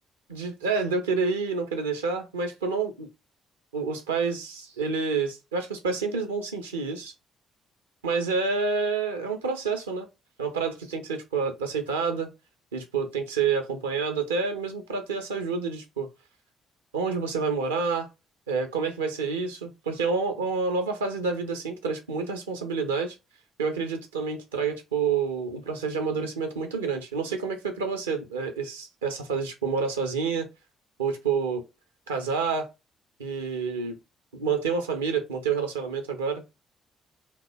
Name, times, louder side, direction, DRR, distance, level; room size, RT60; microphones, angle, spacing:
voice 1, 0.3-3.1 3.7-7.1 8.0-10.1 10.4-12.3 12.7-16.1 16.9-18.1 18.5-23.2 23.6-30.5 31.0-31.6 32.1-32.7 33.2-34.0 34.3-36.4, right 5 dB, 80° right, 0.6 m, -28 dB
2.9 x 2.1 x 3.3 m
figure-of-eight pair, 45°, 0 cm